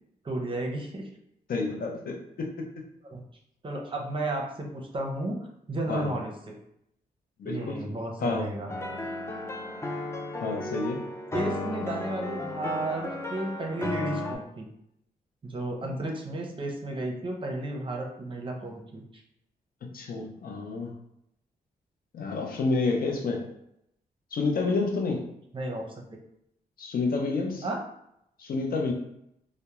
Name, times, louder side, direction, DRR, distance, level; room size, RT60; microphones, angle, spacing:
voice 1, 0.2-1.1 3.1-3.2 3.6-5.4 5.7-6.6 7.4-8.7 11.3-14.7 15.4-19.0 25.5-26.0 27.6-27.8, right 2 dB, 30° right, 1 dB, 0.6 m, -33 dB
voice 2, 1.5-2.5 5.9-6.1 7.4-7.8 8.2-8.5 10.4-11.0 15.8-15.9 19.9-20.9 22.1-23.4 24.3-25.3 26.8-27.6 28.4-28.9, left 3 dB, 65° left, 1 dB, 0.6 m, -29 dB
sound 1, 8.7-14.4, left 2 dB, 15° left, 0.4 m, -34 dB
2.2 x 2.0 x 2.9 m, 0.77 s
cardioid pair, 75°, 16 cm